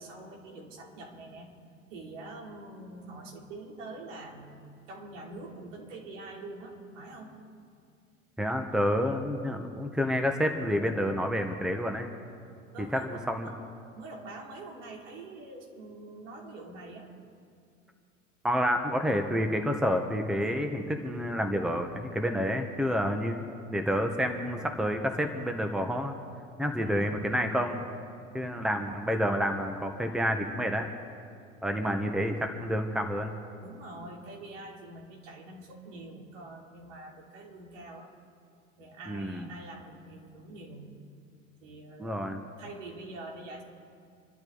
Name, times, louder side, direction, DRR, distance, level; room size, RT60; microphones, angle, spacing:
voice 1, 0.0-1.5 1.9-4.6 4.9-7.4 12.7-13.5 13.9-17.1 26.7-27.2 31.8-32.0 33.6-38.1 38.8-40.9 41.6-43.6, right 2 dB, 65° right, 0 dB, 3.6 m, -45 dB
voice 2, 8.4-12.1 12.9-13.5 18.4-23.4 23.7-26.1 26.6-27.9 28.3-30.9 31.6-33.3 39.1-39.5 42.0-42.4, equal, ahead, 5 dB, 1.4 m, -29 dB
27.5 x 12.5 x 4.1 m, 2.3 s
figure-of-eight pair, 80°, 40 cm